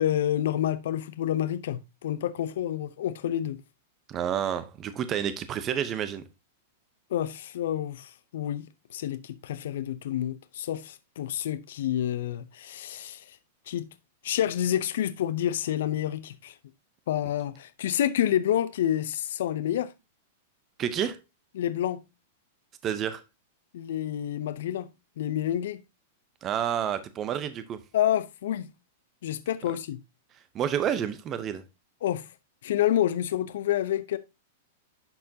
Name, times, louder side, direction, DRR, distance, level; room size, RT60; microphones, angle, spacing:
voice 1, 0.0-3.6 7.1-13.4 13.7-13.9 14.2-16.5 17.1-19.9 21.6-22.0 23.7-24.9 25.2-25.8 27.9-28.7 29.2-30.0 32.0-32.3 32.6-34.2, left 11 dB, 70° left, 0.6 m, -28 dB
voice 2, 4.1-6.3 20.8-21.2 22.8-23.2 26.4-27.8 30.5-31.6, right 9 dB, 30° right, 0.7 m, -29 dB
11.5 x 4.4 x 2.7 m
hypercardioid pair, 110°, 0 cm